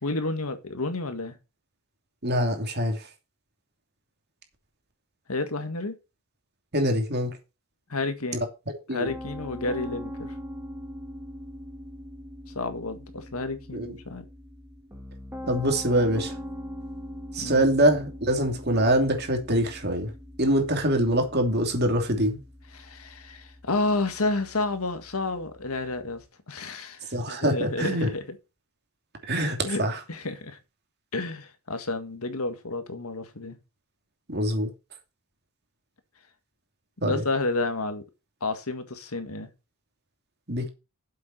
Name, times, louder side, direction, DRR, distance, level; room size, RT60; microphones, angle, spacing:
voice 1, 0.0-1.4 5.3-6.0 7.9-8.4 8.9-10.3 12.6-14.2 17.4-17.7 22.7-28.4 29.6-29.8 30.1-30.6 31.1-33.6 37.0-38.0 38.4-39.5, left 2 dB, 80° left, 1.7 m, -30 dB
voice 2, 2.2-3.0 6.7-7.3 8.9-9.1 13.7-13.9 15.5-16.3 17.3-20.1 20.4-22.4 27.1-28.1 29.3-30.0 34.3-34.7 37.0-37.1 40.5-40.7, right 1 dB, 50° right, 2.8 m, -24 dB
Piano, 9.0-26.2, equal, 10° right, 2.6 m, -42 dB
7.7 x 7.1 x 6.0 m
head